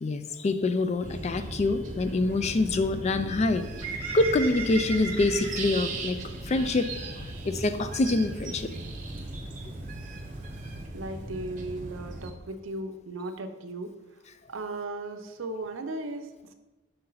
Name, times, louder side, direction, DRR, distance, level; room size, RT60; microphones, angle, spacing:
voice 1, 0.0-3.7 4.1-6.2 6.5-8.7, left 2 dB, 35° left, 10 dB, 0.4 m, -26 dB
sound 1, 1.0-12.3, right 2 dB, 40° right, 0.8 m, -38 dB
Bird, 3.5-10.8, right 4 dB, 10° right, 1.3 m, -41 dB
voice 2, 10.9-14.0 14.5-16.5, right 2 dB, 85° right, 7 dB, 0.6 m, -36 dB
6.5 x 4.3 x 3.9 m, 1.2 s
head